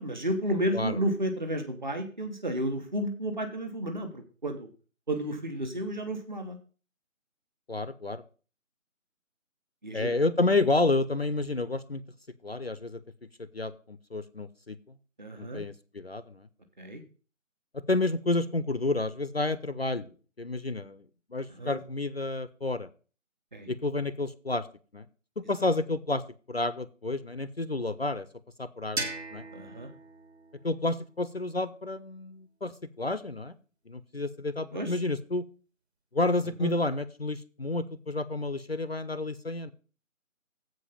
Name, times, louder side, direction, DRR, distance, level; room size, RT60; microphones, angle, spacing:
voice 1, 0.0-4.7 5.1-6.6 9.8-10.1 15.2-15.6 16.8-17.0 21.6-21.8 23.5-23.7 29.5-29.9 34.7-35.0 36.6-36.7, right 1 dB, 35° right, 6 dB, 1.4 m, -32 dB
voice 2, 7.7-8.2 9.9-12.0 12.4-13.0 13.4-14.8 15.4-16.5 17.9-20.1 20.4-21.0 21.3-22.9 23.7-24.7 24.9-25.0 25.4-26.2 26.5-28.3 28.6-29.0 29.3-29.4 30.6-33.6 33.9-35.4 36.1-39.7, left 2 dB, 50° left, 14 dB, 0.5 m, -30 dB
sound 1, 29.0-31.8, right 2 dB, 50° right, 1.7 m, -39 dB
7.9 x 5.2 x 7.2 m, 0.37 s
figure-of-eight pair, 165°, 40 cm